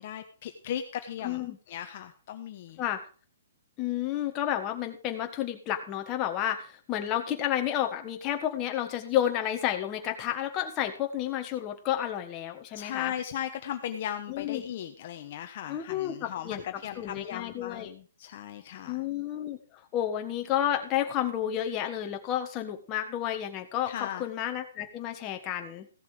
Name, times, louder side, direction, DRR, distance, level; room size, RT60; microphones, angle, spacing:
voice 1, 0.0-1.4 1.7-2.8 12.7-19.0 23.9-24.2, left 10 dB, 40° left, 6 dB, 1.0 m, -37 dB
voice 2, 1.2-1.6 2.8-3.0 3.8-13.1 14.3-14.6 15.7-16.6 17.0-17.9 18.9-25.9, left 11 dB, 20° left, 4 dB, 1.5 m, -31 dB
15.5 x 7.3 x 4.9 m, 0.39 s
hypercardioid pair, 170°, 0 cm